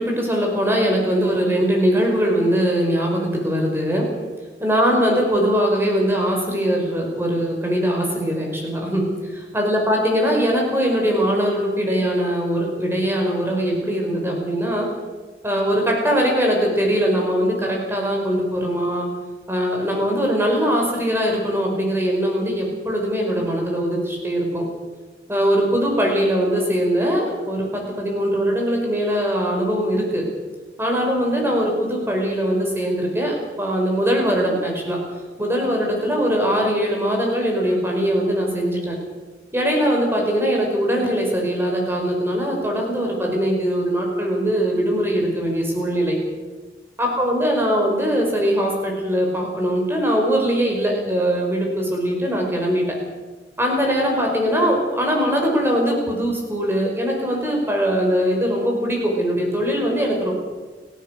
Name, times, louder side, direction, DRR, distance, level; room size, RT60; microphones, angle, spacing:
voice 1, 0.0-4.1 4.6-14.9 15.4-19.1 19.5-24.7 25.3-30.2 30.8-35.0 35.4-38.9 39.5-46.2 47.0-52.8 53.6-60.3, equal, 15° right, 0 dB, 5.1 m, -21 dB
30.0 x 13.5 x 6.5 m, 1.4 s
head